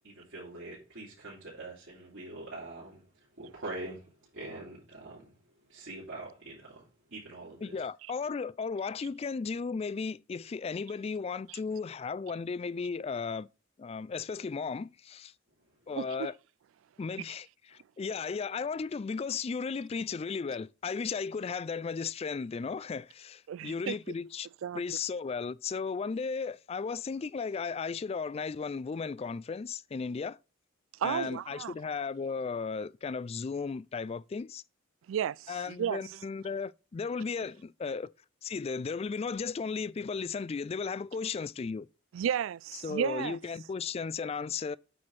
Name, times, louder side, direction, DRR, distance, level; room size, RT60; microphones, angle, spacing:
voice 1, 0.0-5.3 5.7-6.8 7.1-7.8, right 2 dB, 70° right, 3.3 m, -44 dB
voice 2, 7.6-13.5 13.8-15.3 15.9-16.3 17.0-24.5 24.7-30.4 31.0-34.6 35.5-38.1 38.4-41.9 42.8-44.8, left 5 dB, 30° left, 0.3 m, -35 dB
voice 3, 23.5-24.0 24.6-24.8 31.0-31.7 35.1-35.5 35.8-36.0 42.1-43.4, right 9 dB, 90° right, 0.3 m, -32 dB
8.6 x 4.3 x 4.7 m
head